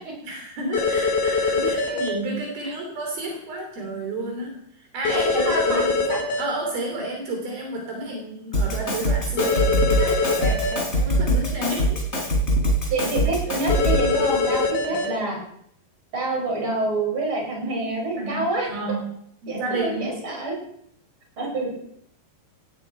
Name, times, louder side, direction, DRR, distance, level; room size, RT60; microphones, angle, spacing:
voice 1, 0.2-6.0 6.4-12.3 13.5-13.7 14.9-15.0 18.2-19.2 19.4-20.2, right 2 dB, 70° right, 1 dB, 4.8 m, -31 dB
sound 1, 0.7-2.1 5.1-6.4 9.4-10.7 13.7-15.1, left 4 dB, 80° left, 4.2 m, -22 dB
voice 2, 5.1-6.2 12.9-15.4 16.1-18.7 19.5-20.5 21.4-21.7, right 2 dB, 30° right, 0 dB, 6.0 m, -27 dB
Drum kit, 8.5-14.1, right 1 dB, 15° left, 4.1 m, -23 dB
17.5 x 14.5 x 4.6 m, 0.70 s
omnidirectional pair, 4.5 m